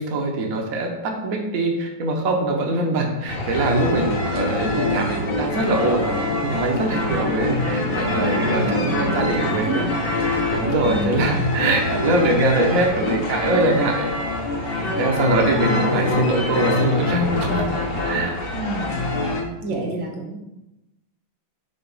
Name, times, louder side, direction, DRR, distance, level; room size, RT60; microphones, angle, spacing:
voice 1, 0.0-9.9 10.5-14.1 14.7-17.6 18.0-18.4 19.7-19.9, right 2 dB, 55° right, 1 dB, 1.1 m, -23 dB
sound 1, 3.3-19.4, left 2 dB, 50° left, 0.7 m, -24 dB
voice 2, 7.9-9.9 10.8-11.4 18.5-19.0 19.6-20.5, right 2 dB, 70° right, 1 dB, 2.0 m, -30 dB
5.9 x 4.2 x 5.5 m, 0.96 s
omnidirectional pair, 2.2 m